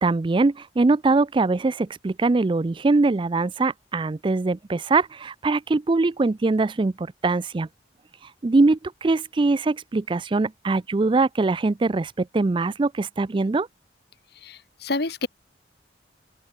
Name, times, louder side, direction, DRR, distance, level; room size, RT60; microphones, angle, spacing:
voice 1, 0.0-7.7 8.4-13.7, right 3 dB, 30° right, 0.4 m, -22 dB
voice 2, 14.4-15.3, left 3 dB, 60° left, 1.5 m, -28 dB
open air
head